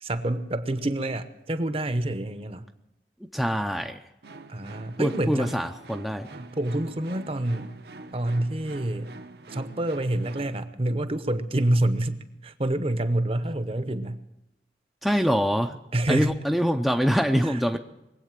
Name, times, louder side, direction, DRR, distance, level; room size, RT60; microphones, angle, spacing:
voice 1, 0.0-2.7 4.5-5.5 6.3-7.7 8.1-9.1 9.5-14.2 15.9-16.3 17.4-17.8, right 1 dB, 35° right, 11 dB, 0.8 m, -27 dB
voice 2, 3.3-4.0 5.0-6.3 15.0-15.7 16.1-17.8, equal, ahead, 4 dB, 0.5 m, -24 dB
sound 1, 4.2-10.6, right 3 dB, 60° right, 0.8 m, -45 dB
22.0 x 8.4 x 7.5 m, 0.93 s
head